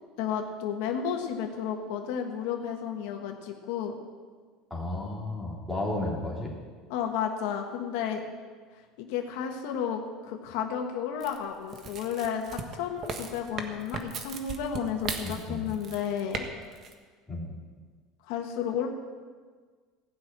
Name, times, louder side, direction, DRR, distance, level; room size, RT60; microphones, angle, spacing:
voice 1, 0.2-4.0 6.9-8.2 9.0-16.4 18.3-18.9, left 8 dB, 75° left, 3 dB, 1.4 m, -32 dB
voice 2, 4.7-6.5 15.2-15.7 17.3-17.5, left 2 dB, 5° left, -4 dB, 3.2 m, -33 dB
sound 1, 11.2-16.4 16.7-16.9, right 5 dB, 40° right, 1.4 m, -37 dB
15.5 x 6.2 x 8.8 m, 1.6 s
cardioid pair, 145°, 0 cm